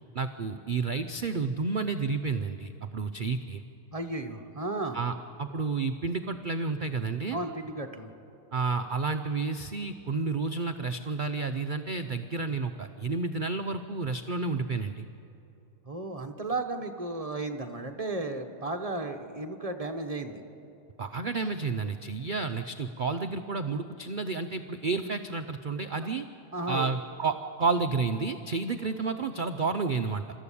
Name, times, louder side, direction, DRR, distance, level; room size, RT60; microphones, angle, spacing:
voice 1, 0.1-3.6 4.9-7.4 8.5-15.1 21.0-26.3 26.7-30.2, right 4 dB, 55° right, 7 dB, 0.5 m, -31 dB
voice 2, 3.9-5.0 7.3-8.1 15.8-20.4 26.0-26.1 26.5-26.9, right 2 dB, 25° right, 5 dB, 1.0 m, -34 dB
26.5 x 13.5 x 8.5 m, 2.8 s
omnidirectional pair, 1.7 m